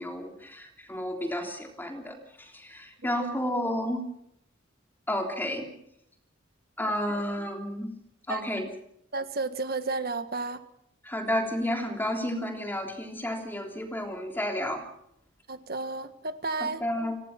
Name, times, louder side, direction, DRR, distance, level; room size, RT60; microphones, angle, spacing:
voice 1, 0.0-4.0 5.1-5.7 6.8-7.9 8.3-8.7 11.0-14.8 16.6-17.1, left 1 dB, 10° left, 3.5 m, -31 dB
voice 2, 9.1-10.6 15.5-16.8, right 3 dB, 50° right, 1.6 m, -32 dB
30.0 x 18.0 x 5.9 m
head